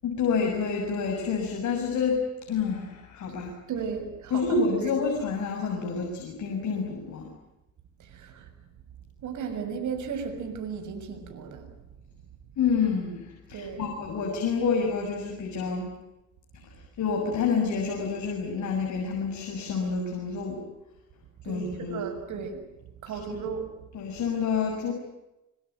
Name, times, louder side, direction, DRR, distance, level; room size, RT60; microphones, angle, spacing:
voice 1, 0.0-2.2 2.5-3.5 4.3-7.3 12.6-15.9 17.0-20.6 21.5-22.1 23.1-23.4 23.9-24.9, left 5 dB, 70° left, 1 dB, 7.0 m, -28 dB
voice 2, 3.7-5.0 8.1-8.5 9.2-11.7 13.5-14.0 21.4-22.6 23.0-23.7, right 6 dB, 75° right, 6 dB, 6.9 m, -35 dB
25.5 x 24.5 x 9.3 m, 0.96 s
cardioid pair, 90°, 30 cm